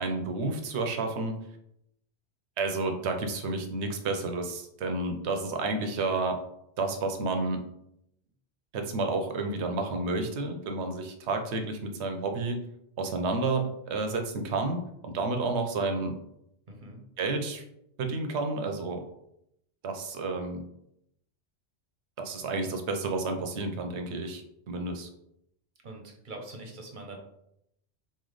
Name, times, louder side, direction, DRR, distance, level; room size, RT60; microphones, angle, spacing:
voice 1, 0.0-1.3 2.6-6.4 6.8-7.6 8.7-12.6 13.0-16.2 17.2-17.6 18.0-19.0 19.8-20.6 22.2-25.1, right 3 dB, 75° right, 4 dB, 1.0 m, -30 dB
voice 2, 16.7-17.0 25.8-27.2, right 2 dB, 50° right, 2 dB, 0.9 m, -43 dB
4.0 x 3.2 x 3.9 m, 0.79 s
omnidirectional pair, 1.2 m